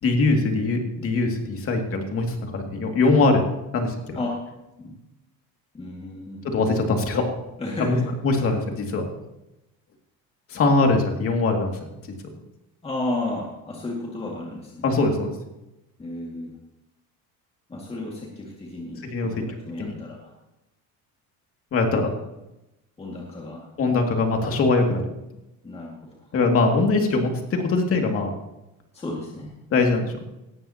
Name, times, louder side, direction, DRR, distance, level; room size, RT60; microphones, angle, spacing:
voice 1, 0.0-3.4 3.7-4.2 6.4-7.2 7.8-8.0 8.2-9.1 10.5-11.9 14.8-15.3 19.0-19.3 19.8-19.9 21.7-22.1 23.8-25.1 26.3-28.3 29.7-30.2, left 3 dB, 40° left, 3 dB, 2.4 m, -22 dB
voice 2, 5.7-6.4 7.6-8.1 12.8-14.9 16.0-16.5 17.7-20.3 21.9-22.1 23.0-23.7 25.6-26.2 28.9-29.5, left 2 dB, 15° left, -3 dB, 2.1 m, -33 dB
18.0 x 13.0 x 2.9 m, 0.94 s
cardioid pair, 145°, 36 cm